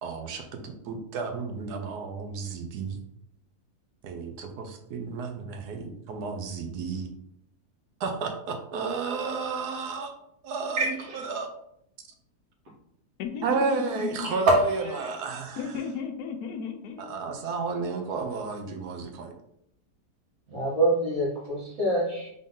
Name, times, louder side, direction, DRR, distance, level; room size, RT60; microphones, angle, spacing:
voice 1, 0.0-3.0 4.0-7.1 8.0-10.1 10.4-11.0 11.2-11.5 13.4-15.6 17.0-19.3, right 4 dB, 80° right, 4 dB, 1.3 m, -32 dB
voice 2, 13.2-14.3 15.6-17.1, left 6 dB, 75° left, 5 dB, 1.2 m, -34 dB
voice 3, 20.5-22.3, right 1 dB, 60° right, -5 dB, 2.0 m, -27 dB
3.8 x 3.8 x 3.7 m, 0.75 s
omnidirectional pair, 1.7 m